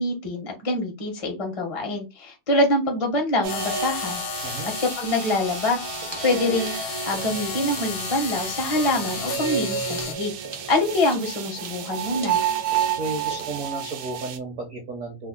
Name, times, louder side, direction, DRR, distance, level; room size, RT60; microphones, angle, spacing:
voice 1, 0.0-4.2 4.8-5.8 6.2-10.3 10.7-12.4, left 1 dB, 40° left, 1 dB, 0.4 m, -25 dB
sound 1, 3.4-14.4, right 8 dB, 80° right, 1.4 m, -31 dB
sound 2, 3.5-10.1, left 9 dB, 80° left, 1.4 m, -34 dB
voice 2, 4.4-4.7 13.0-15.3, right 2 dB, 60° right, 1 dB, 0.8 m, -33 dB
sound 3, 5.5-13.7, right 2 dB, 35° right, 0.4 m, -44 dB
3.5 x 2.0 x 3.7 m, 0.25 s
omnidirectional pair, 2.4 m